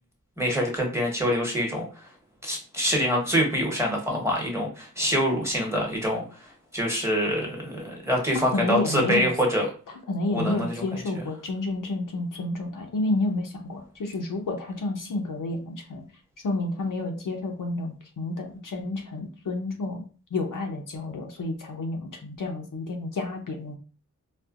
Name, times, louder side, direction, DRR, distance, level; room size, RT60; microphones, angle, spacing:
voice 1, 0.4-2.0 2.4-6.2 6.7-9.7 10.3-10.8 11.1-11.2, equal, 10° right, -1 dB, 1.1 m, -25 dB
voice 2, 8.5-9.3 10.1-16.0 16.4-20.0 20.3-23.8, left 2 dB, 80° left, 2 dB, 0.7 m, -30 dB
4.2 x 2.1 x 2.4 m, 0.38 s
wide cardioid pair, 75°, 31 cm